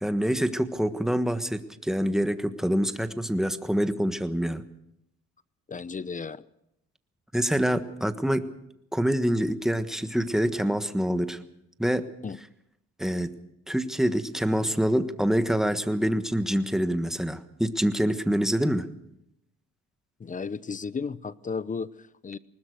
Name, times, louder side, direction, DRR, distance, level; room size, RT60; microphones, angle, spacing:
voice 1, 0.0-4.6 7.3-8.4 8.9-11.4 11.8-12.0 13.0-13.3 13.7-18.9, equal, ahead, 10 dB, 1.4 m, -26 dB
voice 2, 5.7-6.4 12.2-12.4 20.2-22.4, left 5 dB, 25° left, 18 dB, 0.8 m, -34 dB
20.5 x 20.0 x 6.5 m, 0.81 s
cardioid pair, 90°, 30 cm